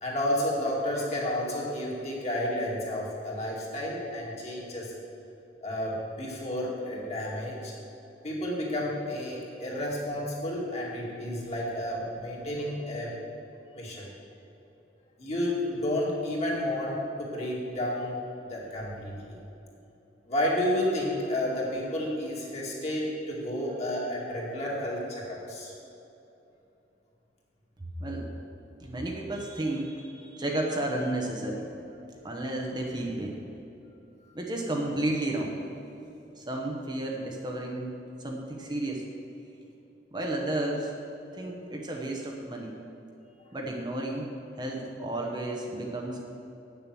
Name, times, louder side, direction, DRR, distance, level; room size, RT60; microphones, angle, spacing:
voice 1, 0.0-4.9 5.6-7.7 8.2-13.1 13.7-14.1 15.2-18.2 18.4-19.3 20.3-25.7, left 1 dB, 40° left, -4 dB, 2.3 m, -31 dB
voice 2, 27.8-28.3 28.8-31.7 32.2-33.4 34.3-35.6 36.4-37.9 38.2-39.0 40.1-40.9 41.3-42.7 43.5-44.3 44.6-46.2, right 1 dB, 25° right, 0 dB, 0.9 m, -32 dB
8.6 x 7.0 x 7.5 m, 2.9 s
head